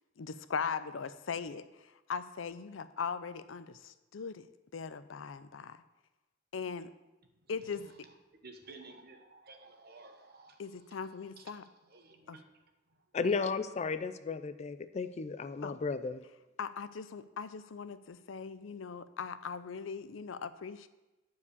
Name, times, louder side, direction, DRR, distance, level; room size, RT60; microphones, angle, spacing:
voice 1, 0.2-4.5 4.7-5.8 6.5-6.9 7.5-7.9 10.6-11.6 12.3-12.4 15.6-15.8 16.6-20.9, left 5 dB, 85° left, 0.5 m, -40 dB
voice 2, 7.3-8.2 8.4-11.0 11.4-12.4 12.9-13.0, right 3 dB, 55° right, 1.1 m, -55 dB
voice 3, 13.1-16.2, left 4 dB, 35° left, 0.4 m, -34 dB
9.7 x 4.8 x 6.7 m
head